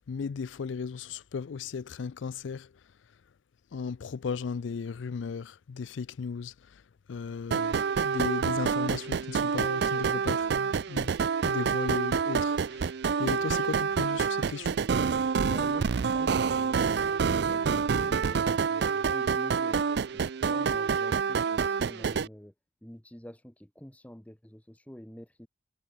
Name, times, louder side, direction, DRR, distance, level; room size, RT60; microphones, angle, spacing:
voice 1, 0.1-3.2 3.7-11.2 11.4-14.8, left 5 dB, 75° left, 0.4 m, -36 dB
sound 1, 7.5-22.3, right 6 dB, 60° right, 0.4 m, -27 dB
voice 2, 15.4-19.8 20.1-22.5 22.8-25.5, equal, 10° left, 1.3 m, -47 dB
head